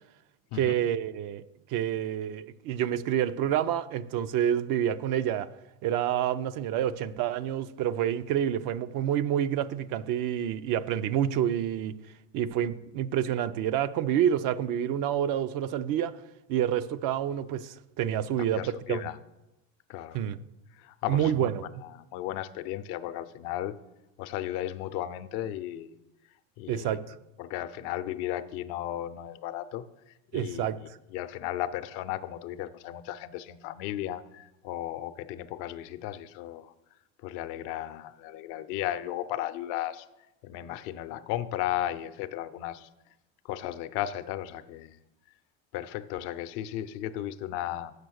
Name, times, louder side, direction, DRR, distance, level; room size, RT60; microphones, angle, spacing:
voice 1, 0.5-1.4 1.7-5.5 5.8-11.9 12.3-16.2 16.5-19.0 20.1-20.4 21.1-21.7 26.7-27.2 30.3-30.8, right 10 dB, 55° right, 13 dB, 0.6 m, -28 dB
voice 2, 18.5-19.2 19.9-20.2 20.8-21.5 21.8-23.8 24.2-25.9 26.6-27.0 27.4-29.8 30.3-30.7 31.1-36.7 37.2-40.0 40.4-42.9 43.4-44.9 45.7-47.9, left 13 dB, 65° left, 12 dB, 0.7 m, -35 dB
6.8 x 6.7 x 6.4 m, 0.93 s
supercardioid pair, 100°, 39 cm